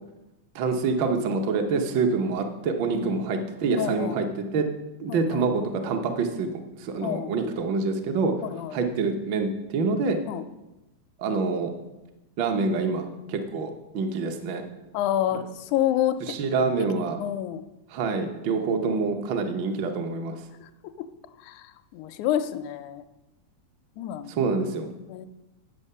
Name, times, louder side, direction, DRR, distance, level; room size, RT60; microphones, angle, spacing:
voice 1, 0.5-4.3 4.5-4.6 5.0-6.5 6.8-8.3 8.7-10.2 11.2-11.7 12.4-14.6 16.3-17.2 17.9-20.4 24.3-24.9, right 4 dB, 75° right, 4 dB, 1.1 m, -26 dB
voice 2, 3.8-4.2 5.1-5.5 7.0-7.3 8.4-8.8 10.2-10.4 14.9-16.3 17.0-17.6 20.6-20.7 21.0-21.1 21.4-23.0 24.0-24.3 25.1-25.3, left 11 dB, 85° left, 9 dB, 1.9 m, -28 dB
9.7 x 6.5 x 5.4 m, 1.0 s
omnidirectional pair, 3.4 m